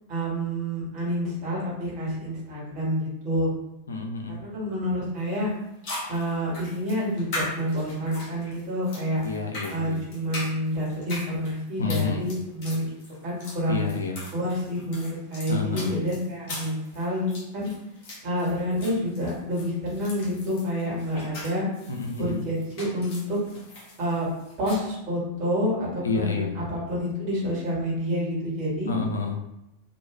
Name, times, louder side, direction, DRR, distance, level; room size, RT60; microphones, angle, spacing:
voice 1, 0.1-3.5 4.3-5.5 6.1-9.2 9.7-12.9 13.2-13.8 14.3-17.7 18.2-21.7 22.2-23.4 24.0-24.3 24.6-28.9, equal, 40° right, -7 dB, 1.5 m, -28 dB
voice 2, 3.9-4.4 9.2-10.0 11.8-12.3 13.7-14.3 15.5-15.9 21.9-22.4 26.0-26.6 28.9-29.4, left 4 dB, 75° left, 2 dB, 0.4 m, -29 dB
sound 1, 5.2-5.3 5.8-24.8, left 1 dB, 40° left, 1.0 m, -40 dB
3.0 x 2.5 x 2.2 m, 0.88 s
figure-of-eight pair, 90°, 0 cm